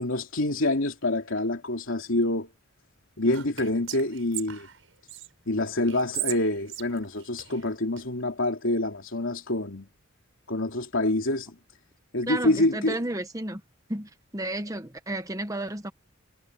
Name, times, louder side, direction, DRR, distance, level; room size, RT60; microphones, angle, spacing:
voice 1, 0.0-2.5 3.2-4.7 5.5-9.9 10.5-11.6 12.1-13.0, left 1 dB, 75° left, 2.9 m, -26 dB
Whispering, 3.3-5.3 5.9-8.0, right 13 dB, 70° right, 6.7 m, -37 dB
voice 2, 12.3-13.6 13.9-15.9, right 1 dB, 15° right, 1.2 m, -32 dB
head